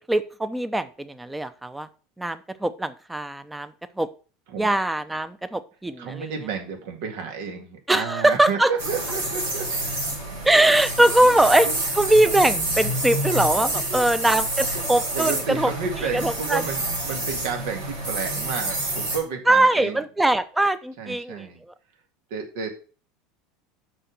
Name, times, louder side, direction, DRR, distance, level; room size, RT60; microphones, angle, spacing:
voice 1, 0.0-1.9 2.2-3.7 4.0-4.1 4.6-6.3 7.9-8.7 10.4-11.7 11.9-15.7 16.0-16.6 19.5-21.5, right 1 dB, 10° right, 12 dB, 0.8 m, -21 dB
voice 2, 6.0-10.1 11.0-11.3 11.6-11.7 13.9-14.2 14.7-20.0 21.0-21.6 22.3-22.7, right 5 dB, 65° right, 4 dB, 2.0 m, -32 dB
sound 1, 8.8-19.2, right 1 dB, 85° right, 3.9 m, -28 dB
6.4 x 5.7 x 6.0 m, 0.37 s
hypercardioid pair, 80°, 0 cm